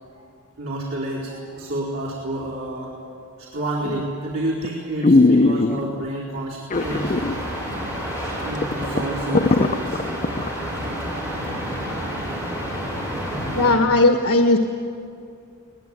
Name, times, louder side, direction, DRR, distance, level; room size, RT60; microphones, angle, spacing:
voice 1, 0.6-2.9 3.4-7.2 8.3-10.0, right 1 dB, 75° right, -6 dB, 4.3 m, -29 dB
sound 1, 3.8-4.2 4.6-4.7 5.0-6.1 6.7-7.4 7.7-7.8 8.3-8.4 8.6-10.5 10.9-11.0, left 3 dB, 35° left, 0.5 m, -19 dB
sound 2, 6.7-13.8, equal, 10° right, 6.6 m, -29 dB
voice 2, 13.6-14.6, left 2 dB, 75° left, 4 dB, 1.2 m, -17 dB
23.5 x 20.5 x 9.1 m, 2.5 s
head